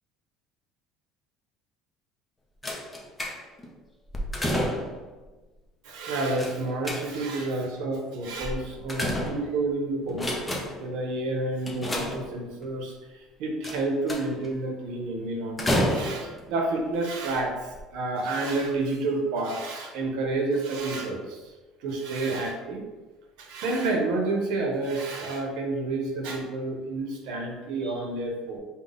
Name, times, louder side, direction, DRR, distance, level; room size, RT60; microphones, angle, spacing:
sound 1, 2.6-3.7 4.1-5.1 6.4-7.4 8.4-9.7 10.1-10.9 11.7-12.6 13.6-14.5 15.6-16.4 17.2-17.4 17.7-17.8, equal, 10° left, 0.5 m, -30 dB
voice 1, 5.8-21.5 21.8-22.8 23.4-28.6, right 2 dB, 70° right, 1 dB, 0.8 m, -30 dB
3.6 x 2.2 x 3.8 m, 1.2 s
cardioid pair, 145°, 0 cm